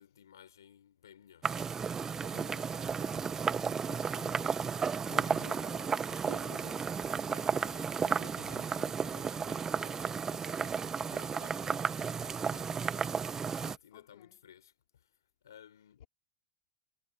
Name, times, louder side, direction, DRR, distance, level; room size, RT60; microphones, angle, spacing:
voice 1, 0.0-1.6 2.3-2.5 5.1-16.1, left 9 dB, 85° left, 4.8 m, -55 dB
sound 1, 1.4-13.8, right 6 dB, 25° right, 1.1 m, -33 dB
voice 2, 2.1-4.6 5.2-6.1 13.9-14.4 16.0-16.1, left 23 dB, 65° left, 4.9 m, -57 dB
hypercardioid pair, 85°, 2 cm